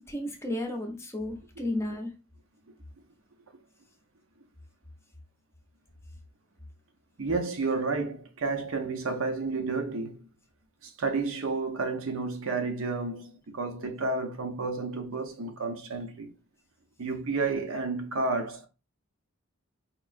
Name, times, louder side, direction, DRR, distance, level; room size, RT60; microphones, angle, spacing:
voice 1, 0.1-2.1, left 1 dB, 10° left, 0.6 m, -33 dB
voice 2, 7.2-10.3 10.8-16.3 17.0-18.7, right 3 dB, 70° right, 0.7 m, -31 dB
4.5 x 2.9 x 2.4 m
head